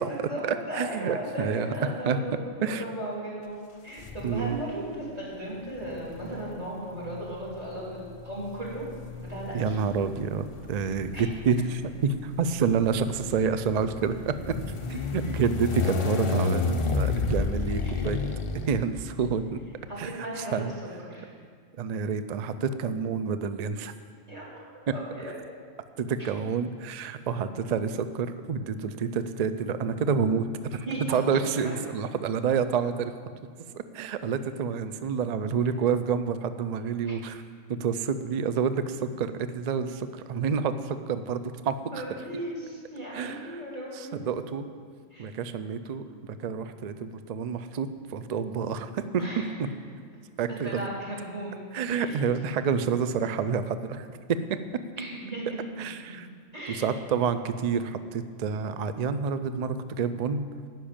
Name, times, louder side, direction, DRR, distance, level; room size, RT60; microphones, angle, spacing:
voice 1, 0.0-8.9 9.2-9.8 11.1-11.2 14.9-15.0 17.8-18.1 19.9-21.3 24.3-25.3 30.8-31.7 37.0-37.1 41.9-44.3 45.1-45.3 49.2-49.7 50.5-51.6 51.9-52.4 55.0-55.6 56.5-56.8, right 1 dB, 30° right, -6 dB, 3.3 m, -36 dB
voice 2, 0.8-1.7 2.1-2.2 2.6-2.8 4.2-4.6 9.5-14.6 14.9-18.2 18.5-19.6 20.0-20.1 20.5-20.7 21.8-23.9 26.0-33.1 33.7-37.4 37.7-41.7 43.1-43.4 44.3-44.7 45.2-49.2 50.4-50.9 51.7-54.6 55.8-56.3 56.7-60.5, right 6 dB, 85° right, 11 dB, 0.3 m, -28 dB
sound 1, 4.0-4.7 5.7-19.4, left 4 dB, 50° left, 0.3 m, -32 dB
10.0 x 6.1 x 8.7 m, 2.1 s
omnidirectional pair, 1.4 m